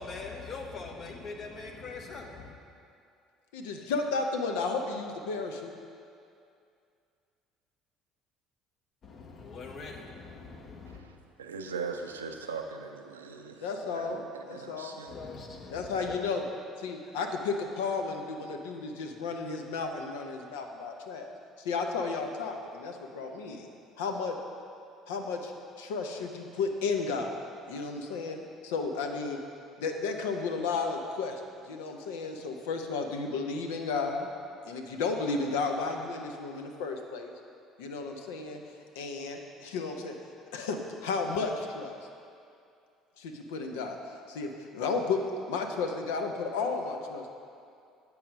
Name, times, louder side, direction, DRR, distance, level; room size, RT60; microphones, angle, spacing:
voice 1, 0.0-2.5 9.0-11.0 15.1-16.2, left 4 dB, 45° left, 2 dB, 1.0 m, -42 dB
voice 2, 3.5-5.7 13.6-15.0 15.7-16.4 16.8-21.3 21.6-23.7 24.0-24.4 25.1-25.5 25.8-27.3 27.7-28.4 28.6-29.4 29.8-31.4 31.7-34.3 34.7-37.3 37.8-38.6 39.0-40.1 40.5-41.9 43.2-44.0 44.3-47.3, left 4 dB, 75° left, 4 dB, 0.6 m, -33 dB
voice 3, 10.9-15.2, right 5 dB, 85° right, 5 dB, 0.4 m, -40 dB
8.7 x 4.8 x 5.1 m, 2.5 s
hypercardioid pair, 60°, 0 cm